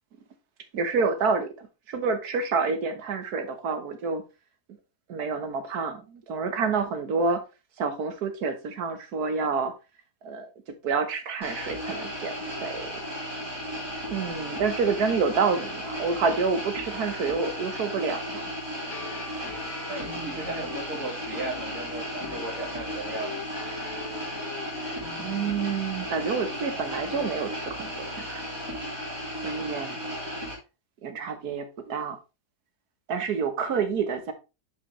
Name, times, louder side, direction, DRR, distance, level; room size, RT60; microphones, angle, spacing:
voice 1, 0.7-4.2 5.1-7.4 7.8-9.7 10.2-10.5 10.8-12.3 12.6-12.9 14.1-18.4 25.2-28.4 29.4-30.0 31.0-32.2 33.1-34.3, right 5 dB, 75° right, 1.6 m, -28 dB
sound 1, 11.4-30.5, equal, 15° right, 2.1 m, -35 dB
sound 2, 18.8-27.5, left 6 dB, 70° left, 1.6 m, -43 dB
voice 2, 19.9-23.4, right 2 dB, 55° right, 2.6 m, -36 dB
7.4 x 5.3 x 3.1 m
omnidirectional pair, 1.7 m